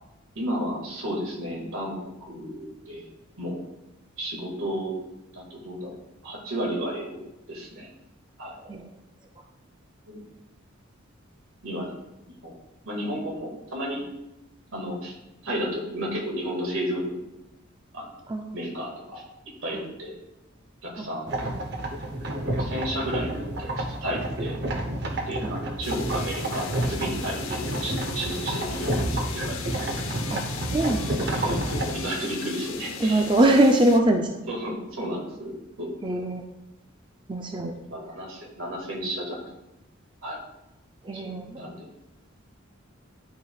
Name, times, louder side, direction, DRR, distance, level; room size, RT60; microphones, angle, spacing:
voice 1, 0.4-3.1 3.4-3.6 4.2-5.0 5.3-6.0 6.2-7.2 7.5-7.9 8.4-8.5 10.1-10.2 11.6-11.9 12.4-12.5 12.8-14.1 14.7-15.1 15.4-17.2 17.9-18.1 18.5-19.2 19.6-20.2 20.8-21.3 22.6-23.3 23.6-24.5 25.3-29.7 31.3-33.3 34.5-35.5 35.8-36.0 37.9-39.4 40.2-40.4 41.1-41.9, equal, 80° right, -1 dB, 2.0 m, -32 dB
voice 2, 18.3-18.6 19.7-19.8 21.0-21.1 25.4-25.5 30.3-30.4 30.7-31.3 33.0-34.3 36.0-36.4 37.3-37.8 41.0-41.6, right 1 dB, 20° right, 2 dB, 0.4 m, -23 dB
sound 1, 21.3-32.0, right 1 dB, 50° right, 0.9 m, -30 dB
sound 2, 25.8-34.0, left 5 dB, 90° left, 0.7 m, -37 dB
12.0 x 4.9 x 2.4 m, 0.93 s
head